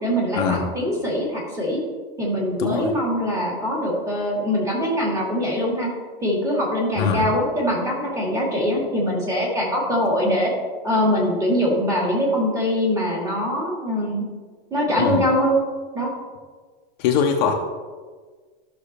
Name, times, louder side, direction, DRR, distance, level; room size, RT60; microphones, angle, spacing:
voice 1, 0.0-1.8 2.2-5.9 6.2-10.5 10.8-14.3 14.7-15.6 15.9-16.1, equal, 10° right, -4 dB, 2.0 m, -23 dB
voice 2, 2.6-2.9 7.0-7.3 15.0-15.3 17.0-17.5, left 7 dB, 45° left, 3 dB, 0.8 m, -22 dB
13.5 x 6.1 x 3.3 m, 1.5 s
supercardioid pair, 175°, 30 cm